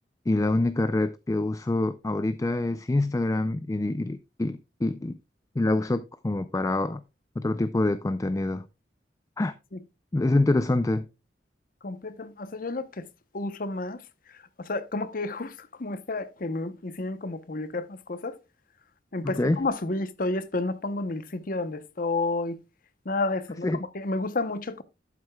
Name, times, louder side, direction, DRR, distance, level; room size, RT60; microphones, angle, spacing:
voice 1, 0.3-5.1 5.6-7.0 7.4-8.7 9.4-9.5 10.1-11.1 19.2-19.7 23.6-23.8, left 2 dB, 20° left, 0.4 m, -26 dB
voice 2, 11.8-13.0 13.3-14.0 14.6-18.4 19.1-22.6 23.1-24.8, left 2 dB, 50° left, 0.8 m, -31 dB
12.0 x 8.1 x 2.2 m
head